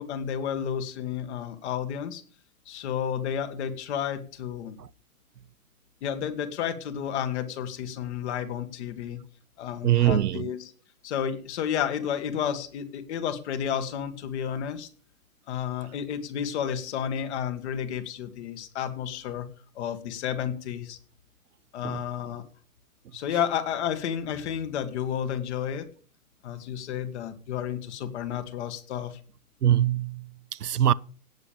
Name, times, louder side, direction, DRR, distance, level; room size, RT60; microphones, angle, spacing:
voice 1, 0.0-2.2 2.7-4.8 6.0-9.2 9.6-10.7 11.0-14.9 15.5-19.5 19.8-21.0 21.7-22.4 23.1-25.9 26.4-29.2, left 9 dB, 45° left, 2.0 m, -31 dB
voice 2, 9.8-10.5 21.8-22.0 29.6-30.9, right 11 dB, 85° right, 0.7 m, -23 dB
17.0 x 7.5 x 5.2 m
hypercardioid pair, 130°, 45 cm